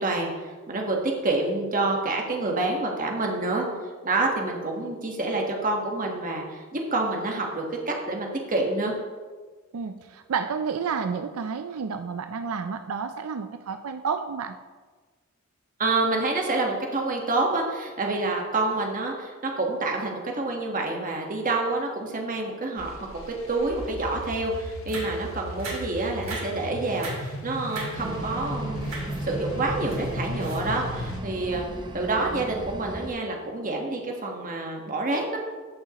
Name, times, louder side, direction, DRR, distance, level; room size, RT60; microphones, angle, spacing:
voice 1, 0.0-3.6 4.0-8.9 15.8-22.9 23.3-28.9 29.2-31.7 31.9-35.4, right 2 dB, 40° right, 1 dB, 1.4 m, -27 dB
voice 2, 9.7-14.6, right 6 dB, 90° right, 8 dB, 0.4 m, -30 dB
sound 1, 22.8-31.2, left 1 dB, 70° left, 0.9 m, -36 dB
sound 2, 24.3-24.4 24.9-25.2 25.6-25.9 26.2-26.6 26.9-27.3 27.6-28.3 28.8-29.2 29.6-31.0 31.5-31.6 31.9-32.1, right 2 dB, 70° right, 2.9 m, -38 dB
sound 3, 28.0-33.1, right 1 dB, 20° right, 0.5 m, -37 dB
14.0 x 5.6 x 3.0 m, 1.4 s
head